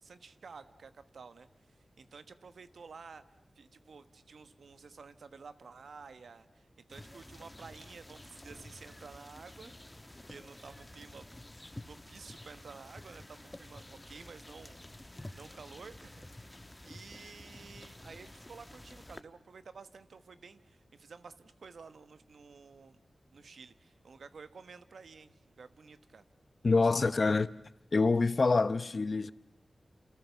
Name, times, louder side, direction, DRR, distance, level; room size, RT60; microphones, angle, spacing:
voice 1, 0.0-3.2 3.5-11.6 11.8-14.8 15.3-16.2 16.5-23.0 23.3-26.2 26.6-27.4, right 5 dB, 85° right, 1.2 m, -52 dB
sound 1, 6.9-19.2, left 1 dB, 20° left, 1.3 m, -50 dB
voice 2, 26.6-27.5 27.9-29.3, left 3 dB, 60° left, 0.9 m, -26 dB
29.0 x 27.5 x 7.1 m
cardioid pair, 40°, 0 cm